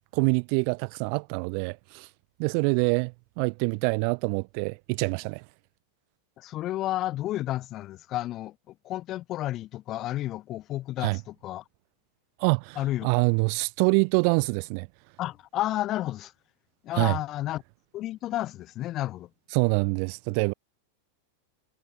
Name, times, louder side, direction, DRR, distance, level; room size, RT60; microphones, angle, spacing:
voice 1, 0.1-2.1 2.4-5.4 11.0-11.2 12.4-12.8 13.0-14.9 16.9-17.2 19.5-20.5, right 40 dB or more, 45° right, 1.5 m, -25 dB
voice 2, 6.4-11.6 12.8-13.1 15.2-16.3 16.8-17.6 17.9-19.3, left 14 dB, 35° left, 2.4 m, -31 dB
figure-of-eight pair, 90°, 0 cm